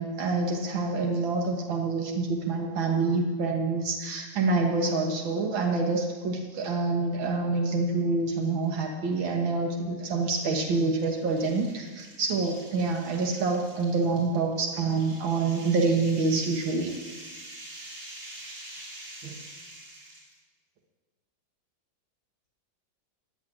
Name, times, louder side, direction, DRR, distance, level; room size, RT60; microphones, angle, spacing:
voice 1, 0.0-17.1 19.2-19.4, right 3 dB, 85° right, 1 dB, 2.2 m, -27 dB
sound 1, 8.3-8.7 9.1-9.2 10.2-20.4, right 1 dB, 70° right, 4.3 m, -46 dB
15.0 x 8.1 x 10.0 m, 1.4 s
omnidirectional pair, 2.1 m